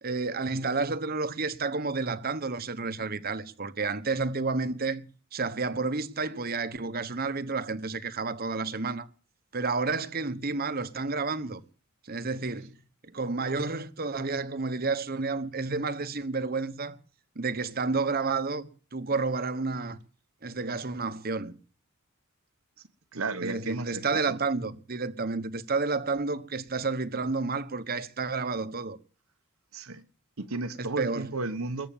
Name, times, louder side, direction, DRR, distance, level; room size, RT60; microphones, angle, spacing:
voice 1, 0.0-9.1 9.5-11.6 12.0-17.0 17.3-20.0 20.4-21.6 23.4-29.0 30.8-31.3, right 4 dB, 45° right, 1.1 m, -30 dB
voice 2, 23.1-24.0 29.7-30.0 30.4-31.9, right 3 dB, 70° right, 1.1 m, -33 dB
21.5 x 8.2 x 7.2 m
head